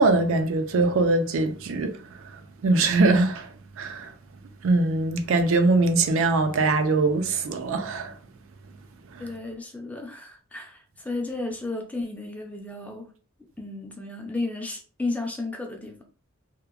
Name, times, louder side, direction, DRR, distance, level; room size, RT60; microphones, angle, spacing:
voice 1, 0.0-2.0 2.6-3.5 3.8-4.1 4.6-8.1 9.1-9.2, right 3 dB, 70° right, 0.4 m, -22 dB
voice 2, 9.2-13.1 13.6-16.0, left 2 dB, 5° left, 0.5 m, -33 dB
2.9 x 2.1 x 2.3 m
head